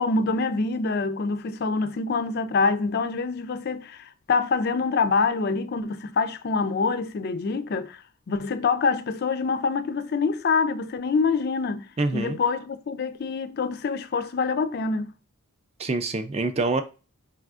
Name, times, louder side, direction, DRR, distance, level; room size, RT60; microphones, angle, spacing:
voice 1, 0.0-15.1, left 4 dB, 45° left, 0.3 m, -26 dB
voice 2, 12.0-12.4 15.8-16.8, right 3 dB, 30° right, 0.4 m, -25 dB
4.8 x 3.4 x 2.4 m
head